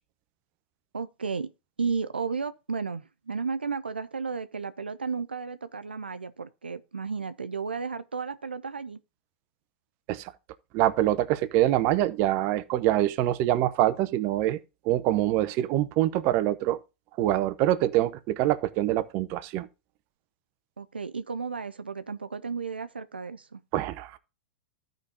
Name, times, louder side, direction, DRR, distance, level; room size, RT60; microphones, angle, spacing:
voice 1, 0.9-1.5 1.8-9.0 20.8-23.6, right 5 dB, 90° right, 0.4 m, -33 dB
voice 2, 10.7-14.6 14.8-16.8 17.2-19.7 23.7-24.2, right 14 dB, 45° right, 0.8 m, -25 dB
14.5 x 5.2 x 2.7 m
hypercardioid pair, 100°, 5 cm